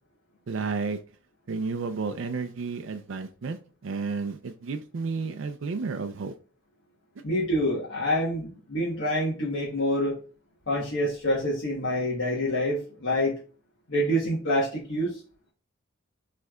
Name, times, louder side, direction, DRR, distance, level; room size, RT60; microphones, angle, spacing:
voice 1, 0.5-1.0 1.5-6.3, right 4 dB, 70° right, 6 dB, 0.4 m, -32 dB
voice 2, 7.2-10.2 10.7-13.4 13.9-15.2, equal, 70° left, -4 dB, 1.2 m, -27 dB
6.2 x 3.3 x 2.3 m, 0.38 s
head